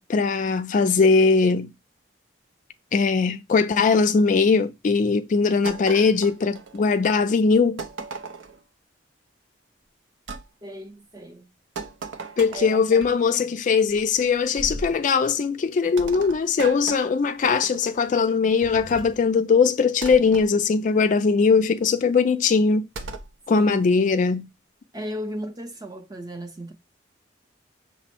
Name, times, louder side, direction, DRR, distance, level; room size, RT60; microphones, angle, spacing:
voice 1, 0.1-1.7 2.9-7.8 12.4-22.8 23.5-24.5, left 5 dB, 40° left, 0.3 m, -20 dB
sound 1, 5.7-7.1 7.8-8.6 10.3-10.5 11.8-12.9 14.6-15.0 16.0-18.1 20.0-20.5 23.0-23.3, right 3 dB, 75° right, 0.6 m, -36 dB
voice 2, 10.6-11.5 12.5-13.0 21.6-21.8 23.5-23.8 24.9-26.7, right 1 dB, 20° right, 0.6 m, -36 dB
sound 2, 12.4-14.5 16.4-16.5 17.4-17.6 18.1-19.5, left 1 dB, 90° right, 1.6 m, -46 dB
6.0 x 2.0 x 4.3 m
head